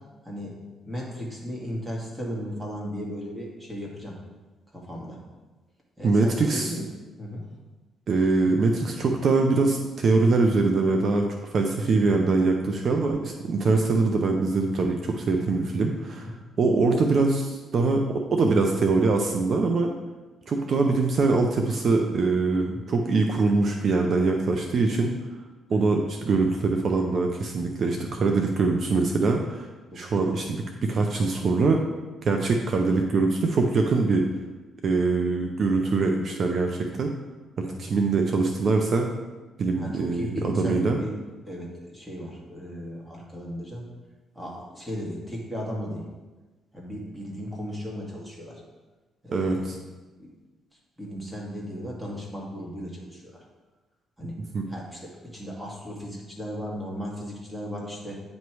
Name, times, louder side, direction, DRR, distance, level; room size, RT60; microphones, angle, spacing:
voice 1, 0.2-0.6 0.9-4.2 4.7-5.2 6.0-6.9 7.2-7.4 8.4-9.1 12.9-13.2 16.1-16.3 22.5-22.8 25.7-25.8 29.9-30.2 37.6-37.8 39.8-41.1 41.5-43.9 44.4-46.0 46.7-48.6 49.2-49.7 50.2-50.3 51.0-53.4 54.2-54.4 54.7-58.2, equal, 5° right, -3 dB, 2.0 m, -36 dB
voice 2, 6.0-6.7 8.1-16.3 16.6-19.9 20.5-25.1 25.7-29.7 29.9-31.8 32.2-34.3 34.8-37.1 37.6-39.1 39.6-41.0 49.3-49.8 54.5-54.7, right 3 dB, 55° right, 3 dB, 0.6 m, -23 dB
9.4 x 3.2 x 4.6 m, 1.2 s
cardioid pair, 90°, 0 cm